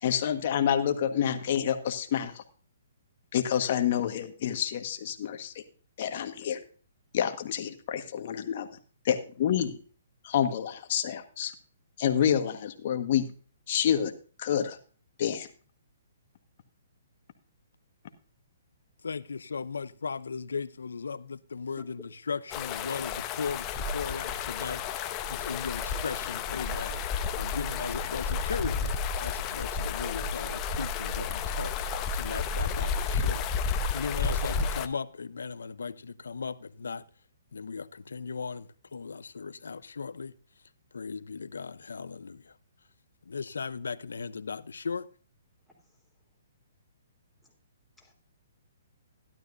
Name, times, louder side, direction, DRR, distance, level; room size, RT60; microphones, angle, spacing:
voice 1, 0.0-2.4 3.3-5.6 6.0-6.6 7.1-8.7 9.0-9.8 10.2-11.5 12.0-13.3 13.7-14.1 14.4-14.8 15.2-15.5, left 9 dB, 50° left, 1.5 m, -28 dB
voice 2, 19.0-27.0 27.3-31.8 32.1-33.4 33.9-37.1 37.5-40.3 40.9-42.5 43.3-45.1, left 5 dB, 85° left, 0.7 m, -37 dB
voice 3, 21.8-21.9 25.9-26.2 45.8-46.0 47.4-47.5 48.0-48.3, left 2 dB, ahead, 3.4 m, -51 dB
sound 1, 22.5-34.9, left 5 dB, 25° left, 0.8 m, -31 dB
13.0 x 12.0 x 2.6 m
hypercardioid pair, 145°, 0 cm